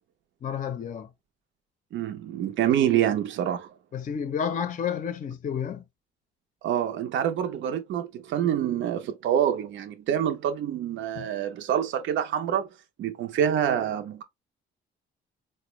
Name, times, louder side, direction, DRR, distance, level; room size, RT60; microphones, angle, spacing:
voice 1, 0.4-1.1 3.9-5.8 11.2-11.3, left 7 dB, 40° left, 0.5 m, -31 dB
voice 2, 1.9-3.7 6.6-12.7 13.0-14.2, right 10 dB, 70° right, 0.5 m, -26 dB
4.2 x 2.1 x 3.0 m
cardioid pair, 90°, 20 cm